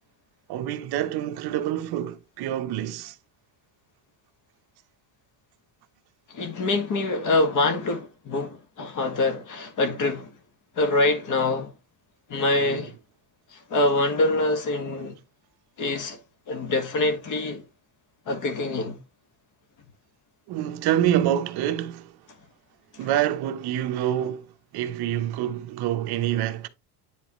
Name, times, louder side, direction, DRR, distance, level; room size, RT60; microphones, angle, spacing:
voice 1, 0.5-3.1 20.5-22.1 23.0-24.5 24.7-26.7, right 11 dB, 55° right, 0.9 m, -26 dB
voice 2, 6.3-10.3 10.7-11.7 12.3-12.9 13.5-15.2 15.8-16.2 16.5-17.6 18.3-19.0 23.0-23.1, left 2 dB, 40° left, 1.6 m, -25 dB
9.9 x 4.0 x 3.0 m
cardioid pair, 155°, 46 cm